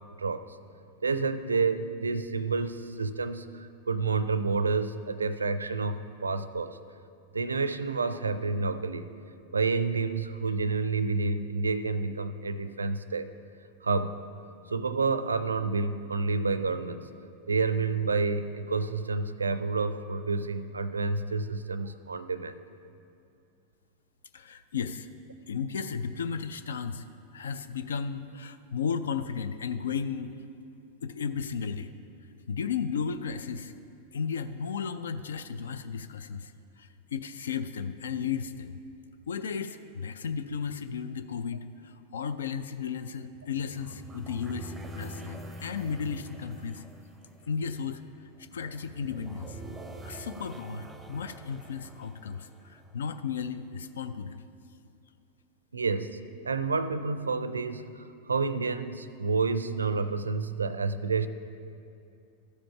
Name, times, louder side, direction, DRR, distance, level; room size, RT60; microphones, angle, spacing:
voice 1, 0.2-0.6 1.0-6.8 7.3-9.1 9.5-13.3 13.8-14.2 14.7-17.1 17.5-22.6 55.7-61.3, right 4 dB, 75° right, 13 dB, 0.4 m, -29 dB
voice 2, 24.3-25.1 25.5-27.0 27.3-30.3 31.0-31.9 32.5-33.7 34.1-38.8 39.3-46.9 47.5-49.6 50.0-54.4, left 6 dB, 65° left, 10 dB, 0.3 m, -34 dB
sound 1, 43.4-53.4, right 1 dB, 10° right, 0.6 m, -45 dB
13.5 x 5.1 x 5.5 m, 2.5 s
figure-of-eight pair, 90°, 0 cm